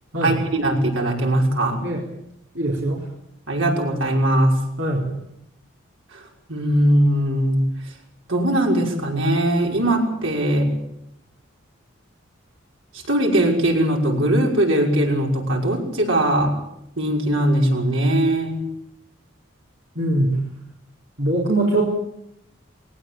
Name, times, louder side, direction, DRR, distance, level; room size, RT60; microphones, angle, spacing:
voice 1, 0.2-1.9 3.5-4.6 6.1-6.2 6.5-7.7 8.3-10.8 12.9-16.6 17.0-18.6, right 1 dB, 75° right, 0 dB, 5.9 m, -20 dB
voice 2, 2.5-3.0 4.8-5.1 20.0-20.4 21.2-21.8, right 1 dB, 60° right, -3 dB, 4.1 m, -21 dB
21.5 x 18.5 x 8.8 m, 0.79 s
head